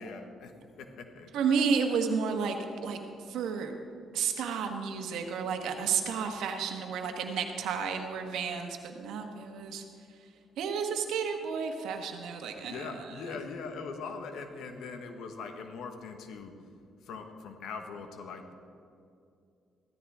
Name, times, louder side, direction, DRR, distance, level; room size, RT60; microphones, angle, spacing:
voice 1, 0.0-1.3 12.6-16.5 17.0-18.5, left 4 dB, 80° left, 6 dB, 1.3 m, -41 dB
voice 2, 1.3-2.6 2.8-3.0 3.3-3.7 4.1-9.8 10.6-13.1, right 6 dB, 85° right, 5 dB, 1.4 m, -31 dB
15.5 x 13.5 x 3.6 m, 2.4 s
cardioid pair, 90°, 0 cm